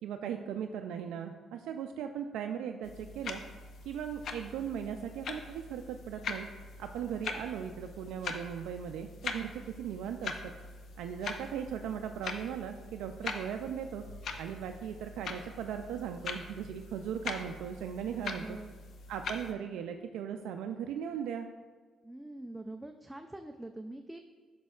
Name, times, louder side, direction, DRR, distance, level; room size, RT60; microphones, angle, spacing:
voice 1, 0.0-3.4 3.9-6.5 6.8-10.5 11.0-14.1 14.4-18.6 19.1-21.5, right 8 dB, 90° right, 5 dB, 0.3 m, -38 dB
sound 1, 2.8-19.5, left 4 dB, 65° left, 0.6 m, -43 dB
voice 2, 18.1-18.7 22.0-24.2, right 1 dB, 10° right, 5 dB, 0.4 m, -44 dB
8.4 x 6.0 x 2.4 m, 1.5 s
cardioid pair, 90°, 0 cm